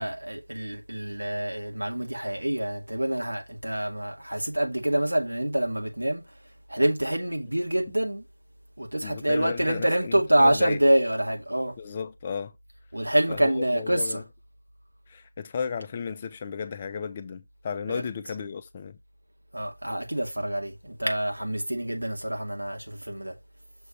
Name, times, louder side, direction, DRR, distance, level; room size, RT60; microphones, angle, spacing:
voice 1, 0.0-6.2 6.7-8.2 8.8-11.8 12.9-14.2 17.9-18.0 19.5-23.3, right 1 dB, 80° right, 2.3 m, -26 dB
voice 2, 9.0-10.8 11.8-12.6 13.3-14.2 15.1-19.0, left 6 dB, 20° left, 0.5 m, -34 dB
6.2 x 3.3 x 5.5 m
figure-of-eight pair, 165°, 0 cm